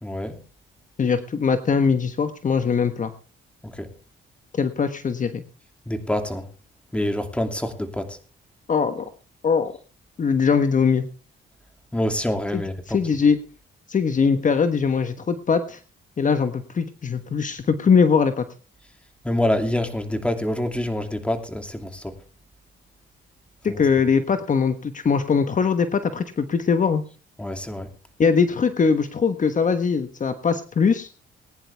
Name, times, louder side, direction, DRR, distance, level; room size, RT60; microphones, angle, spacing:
voice 1, 0.0-0.4 3.6-3.9 5.9-6.4 6.9-8.2 11.9-13.0 19.2-22.1 23.7-23.8 27.4-27.9, left 1 dB, 5° left, 6 dB, 2.6 m, -26 dB
voice 2, 1.0-3.1 4.6-5.4 8.7-9.0 9.4-9.7 10.2-11.0 12.5-13.4 13.9-15.8 16.2-18.4 23.6-27.0 28.2-31.1, left 5 dB, 40° left, 9 dB, 1.2 m, -21 dB
20.0 x 10.0 x 3.5 m, 0.36 s
cardioid pair, 90°, 20 cm